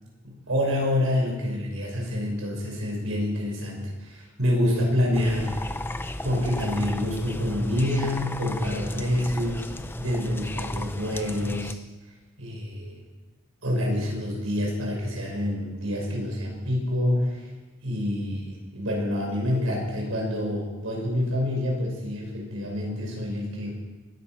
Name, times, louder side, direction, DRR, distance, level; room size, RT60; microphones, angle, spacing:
voice 1, 0.2-5.6 6.2-9.6 10.0-11.8 12.4-13.0 13.6-17.5 17.8-23.8, left 1 dB, 90° right, -1 dB, 5.6 m, -27 dB
More Raccoon Noises, 5.1-11.7, left 1 dB, 10° left, 0.6 m, -34 dB
21.0 x 9.7 x 6.1 m, 1.2 s
head